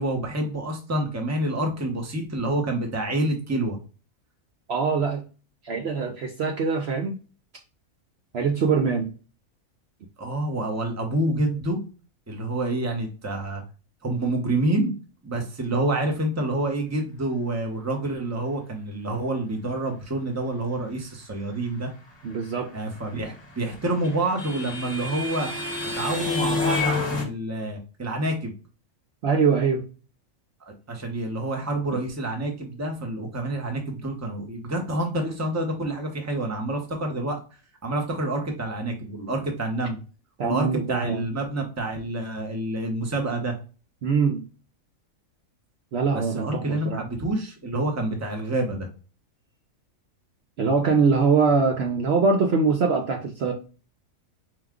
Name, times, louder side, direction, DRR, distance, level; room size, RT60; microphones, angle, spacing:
voice 1, 0.0-3.8 10.2-11.8 12.3-13.6 14.0-14.9 15.2-21.9 22.7-25.5 25.9-28.5 30.7-37.4 37.8-40.0 40.4-43.6 46.1-48.9, right 1 dB, 15° right, 2 dB, 0.8 m, -28 dB
voice 2, 4.7-5.2 5.6-7.2 8.3-9.1 22.2-22.7 29.2-29.8 40.4-41.2 44.0-44.4 45.9-47.0 50.6-53.5, right 5 dB, 60° right, 2 dB, 0.8 m, -23 dB
sound 1, 23.4-27.2, left 3 dB, 20° left, 1.1 m, -28 dB
4.8 x 2.3 x 3.5 m, 0.35 s
omnidirectional pair, 1.4 m